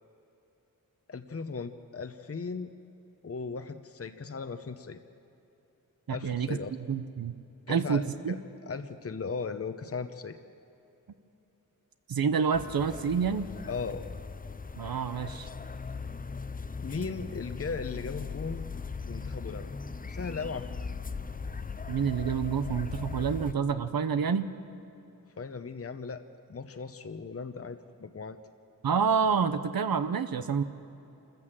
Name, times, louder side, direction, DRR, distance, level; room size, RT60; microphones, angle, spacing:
voice 1, 1.1-2.7 3.2-5.0 6.1-6.7 7.7-10.4 13.7-14.1 16.8-18.7 19.0-19.7 20.1-20.7 25.4-28.4, left 4 dB, 45° left, 8 dB, 0.8 m, -37 dB
voice 2, 6.1-6.5 6.9-7.3 7.7-8.4 12.1-13.5 14.8-15.5 21.9-24.5 28.8-30.6, right 6 dB, 90° right, 10 dB, 0.9 m, -28 dB
sound 1, 12.5-23.5, left 5 dB, 25° left, 0.5 m, -39 dB
27.0 x 14.5 x 7.5 m, 2.9 s
wide cardioid pair, 80°, 34 cm